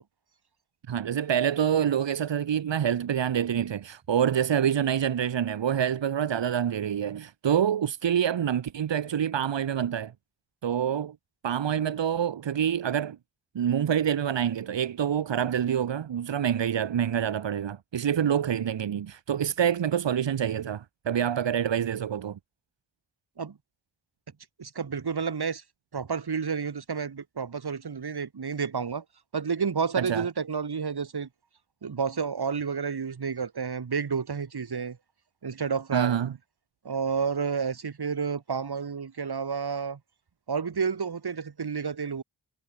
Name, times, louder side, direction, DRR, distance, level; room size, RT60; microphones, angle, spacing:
voice 1, 0.9-10.1 10.6-11.2 11.4-13.2 13.6-22.4 30.0-30.3 35.9-36.3, right 9 dB, 85° right, 1.9 m, -26 dB
voice 2, 24.6-25.6 25.9-29.0 29.3-31.3 31.8-35.0 35.4-36.2 36.8-40.0 40.5-42.2, right 6 dB, 60° right, 4.2 m, -30 dB
cardioid pair, 60°, 43 cm